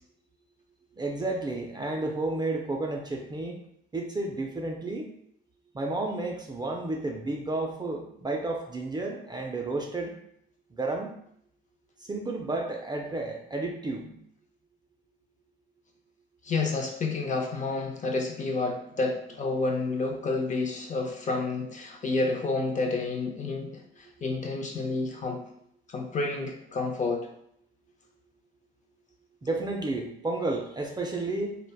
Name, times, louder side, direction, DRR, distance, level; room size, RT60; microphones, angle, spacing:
voice 1, 1.0-3.6 3.9-5.1 5.7-10.1 10.8-11.1 12.0-14.2 29.4-31.6, right 2 dB, 20° right, 1 dB, 0.4 m, -31 dB
voice 2, 16.5-23.7 24.2-25.4 25.9-27.3, left 3 dB, 40° left, 2 dB, 0.5 m, -29 dB
3.2 x 2.1 x 2.3 m, 0.71 s
cardioid pair, 90°, 20 cm